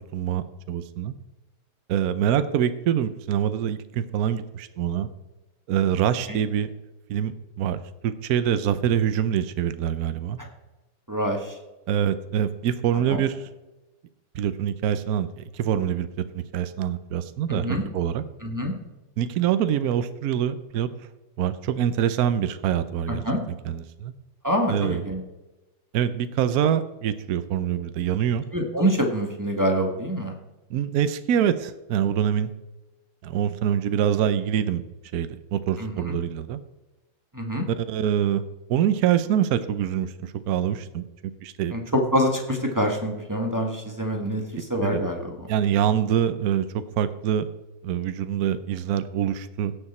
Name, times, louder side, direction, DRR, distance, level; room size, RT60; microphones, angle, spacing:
voice 1, 0.1-1.1 1.9-5.1 5.7-6.7 7.1-10.4 11.9-13.4 14.3-16.1 16.3-18.2 19.2-20.9 21.4-23.2 23.6-24.1 24.7-25.0 25.9-28.4 30.7-32.5 33.2-34.8 35.1-36.6 37.7-38.4 38.7-41.1 41.4-41.7 44.8-45.0 45.5-47.5 47.8-49.7, right 9 dB, 65° right, 12 dB, 1.0 m, -25 dB
voice 2, 11.1-11.5 13.1-13.2 17.5-17.8 18.4-18.7 23.1-23.4 24.4-25.2 28.5-30.3 35.8-36.2 37.3-37.7 41.7-44.4 44.7-45.5, equal, 10° right, 1 dB, 1.2 m, -25 dB
16.5 x 6.8 x 4.3 m, 1.1 s
omnidirectional pair, 2.2 m